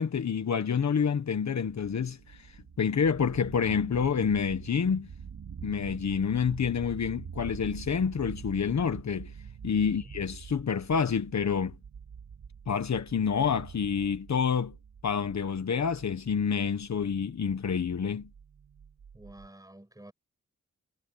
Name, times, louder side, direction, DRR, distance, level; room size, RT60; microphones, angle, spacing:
voice 1, 0.0-2.4 2.8-5.1 5.6-9.3 9.6-11.7 12.7-14.8 15.0-18.3, left 6 dB, 60° left, 1.4 m, -28 dB
sound 1, 1.6-19.5, right 7 dB, 80° right, 2.5 m, -46 dB
voice 2, 9.8-10.1 19.1-20.1, right 1 dB, 10° right, 7.8 m, -49 dB
wide cardioid pair, 125°, 31 cm